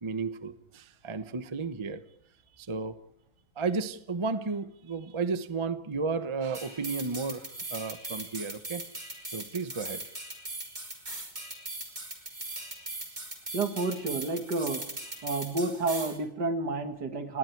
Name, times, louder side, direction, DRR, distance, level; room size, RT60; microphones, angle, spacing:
voice 1, 0.0-2.0 2.6-3.0 3.6-8.8 9.3-10.0, right 4 dB, 35° right, 11 dB, 0.4 m, -33 dB
sound 1, 6.5-16.2, right 2 dB, 20° right, 3.6 m, -40 dB
voice 2, 13.5-14.8 15.2-17.4, right 3 dB, 55° right, 7 dB, 2.4 m, -30 dB
28.5 x 20.5 x 4.7 m, 0.73 s
omnidirectional pair, 2.2 m